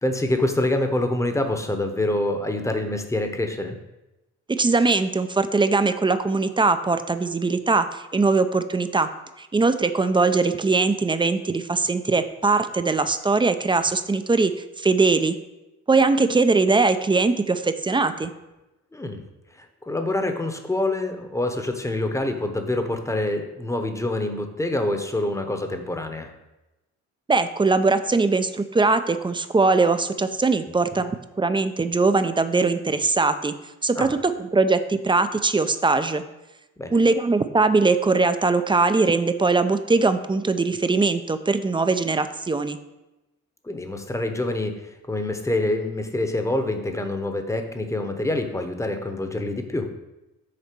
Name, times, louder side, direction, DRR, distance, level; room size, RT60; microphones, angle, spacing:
voice 1, 0.0-3.8 18.9-19.2 19.6-26.3 30.9-31.0 33.9-34.1 36.8-37.0 43.6-49.9, left 1 dB, 10° left, 6 dB, 0.9 m, -26 dB
voice 2, 4.5-9.1 9.4-14.5 14.8-15.3 15.9-18.3 27.3-31.1 31.4-33.5 33.8-36.2 36.9-42.8, right 3 dB, 15° right, 10 dB, 0.5 m, -21 dB
6.7 x 4.2 x 6.1 m, 0.99 s
cardioid pair, 90°, 30 cm